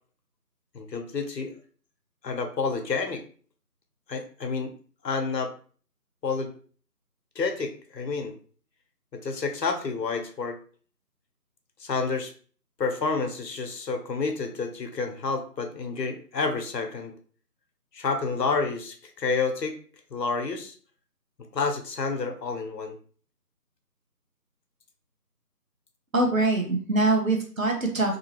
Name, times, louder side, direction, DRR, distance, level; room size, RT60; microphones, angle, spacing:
voice 1, 0.7-1.5 2.2-3.2 4.1-4.7 5.0-5.5 6.2-6.5 7.4-8.3 9.1-10.6 11.8-12.3 12.8-17.1 17.9-19.8 20.1-20.7 21.5-23.0, left 4 dB, 90° left, 5 dB, 0.8 m, -29 dB
voice 2, 26.1-28.2, right 2 dB, 55° right, 1 dB, 0.8 m, -23 dB
2.7 x 2.5 x 2.9 m, 0.43 s
figure-of-eight pair, 175°, 48 cm